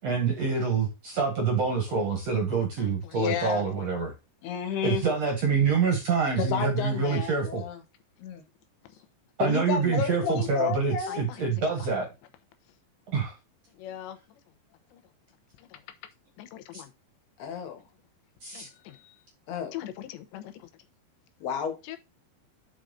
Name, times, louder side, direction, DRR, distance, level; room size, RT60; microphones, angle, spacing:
voice 1, 0.0-0.9 1.1-4.1 4.8-7.6 9.4-12.1 13.1-13.3 16.7-16.8 18.4-18.7, right 5 dB, 50° right, 2.0 m, -26 dB
voice 2, 3.1-3.6 4.4-5.0 6.4-7.8 8.2-8.4 9.4-11.2 17.4-17.8 19.5-19.7 21.4-21.8, left 8 dB, 70° left, 3.6 m, -31 dB
voice 3, 11.1-11.4 13.8-14.2 14.9-15.0 15.6-15.8 16.4-16.9 18.5-19.2 19.7-20.7 21.8-22.0, left 12 dB, 85° left, 3.2 m, -42 dB
8.9 x 5.1 x 4.0 m
omnidirectional pair, 5.0 m